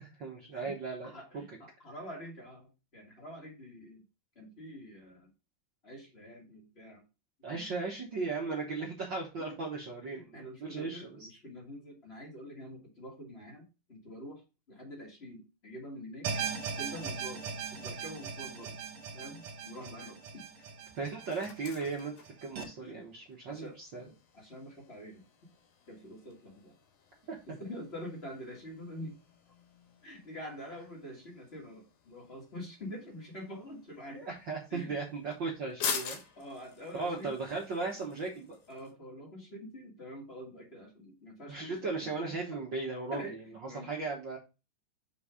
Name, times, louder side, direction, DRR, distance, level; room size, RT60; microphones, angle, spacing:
voice 1, 0.0-1.4 7.4-11.3 21.0-22.1 22.4-24.0 27.3-27.6 34.1-36.2 36.9-38.6 41.5-44.4, right 4 dB, 85° right, -2 dB, 1.0 m, -37 dB
voice 2, 1.0-4.0 4.3-5.3 5.8-7.0 7.5-7.7 9.4-9.6 10.1-14.4 14.7-16.3 16.7-17.4 17.7-18.8 19.1-20.4 22.8-23.0 23.5-25.2 25.9-26.7 27.5-29.2 30.0-34.2 34.7-35.0 36.3-37.3 38.7-42.6 43.1-43.9, equal, 30° left, -1 dB, 1.2 m, -46 dB
sound 1, 16.2-22.6, right 6 dB, 65° right, 1.9 m, -39 dB
sound 2, 19.3-38.9, left 6 dB, 70° left, 2.4 m, -46 dB
5.9 x 4.7 x 4.8 m, 0.29 s
omnidirectional pair, 4.1 m